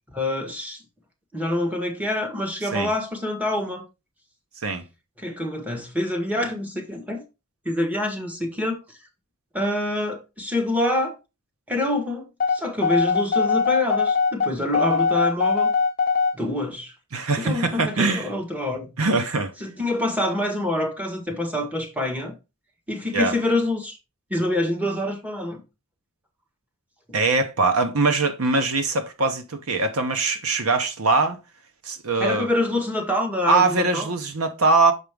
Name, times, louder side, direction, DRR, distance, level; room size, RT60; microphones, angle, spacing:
voice 1, 0.1-0.8 1.3-3.8 5.2-7.2 7.6-8.8 9.5-11.2 11.7-15.7 16.3-16.9 17.4-18.9 19.6-22.3 22.9-24.0 24.3-25.6 27.1-27.2 32.2-34.1, left 1 dB, 5° right, 1.4 m, -26 dB
sound 1, 12.4-16.4, left 5 dB, 40° left, 0.6 m, -21 dB
voice 2, 17.1-18.3 19.0-19.5 23.1-23.4 27.1-31.4 31.8-32.5 33.5-34.9, right 3 dB, 80° right, 1.1 m, -22 dB
6.4 x 5.1 x 3.5 m
head